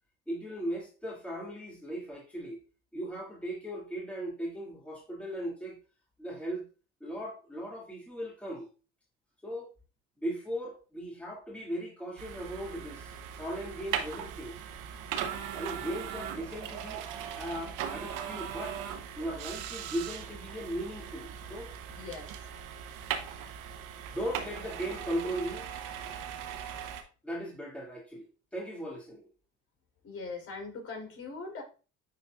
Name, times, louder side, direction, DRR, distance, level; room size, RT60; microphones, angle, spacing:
voice 1, 0.3-2.6 2.9-5.8 6.2-6.7 7.0-8.7 9.4-9.7 10.2-14.6 15.5-17.0 17.4-18.8 19.1-21.7 24.1-25.7 27.2-28.3 28.5-29.3, equal, 5° left, 2.3 m, -38 dB
sound 1, 12.2-27.0, right 9 dB, 75° right, 1.0 m, -39 dB
voice 2, 21.9-22.5 30.0-31.6, left 4 dB, 45° left, 3.2 m, -41 dB
9.7 x 4.1 x 2.4 m
supercardioid pair, 70°, 32 cm